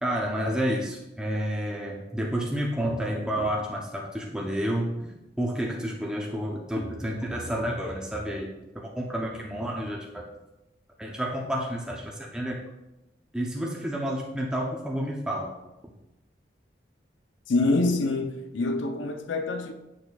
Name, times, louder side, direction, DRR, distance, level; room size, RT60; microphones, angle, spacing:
voice 1, 0.0-8.5 8.7-10.2 11.0-12.6 13.3-15.5, equal, 5° right, 0.6 m, -30 dB
voice 2, 17.5-19.7, left 2 dB, 80° left, 0.6 m, -26 dB
7.5 x 6.5 x 2.3 m
head